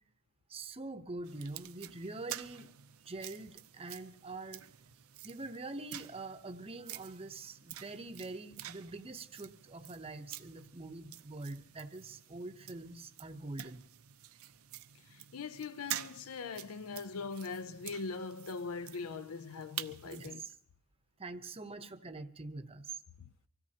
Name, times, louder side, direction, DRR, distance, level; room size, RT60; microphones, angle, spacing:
voice 1, 0.5-2.7 3.1-4.7 5.2-13.8 20.0-20.5 21.2-23.0, right 2 dB, 25° right, 0.8 m, -44 dB
sound 1, 1.2-20.4, right 12 dB, 70° right, 0.6 m, -48 dB
voice 2, 15.1-20.5 23.2-23.3, left 4 dB, 75° left, 0.5 m, -41 dB
25.0 x 16.5 x 2.8 m
head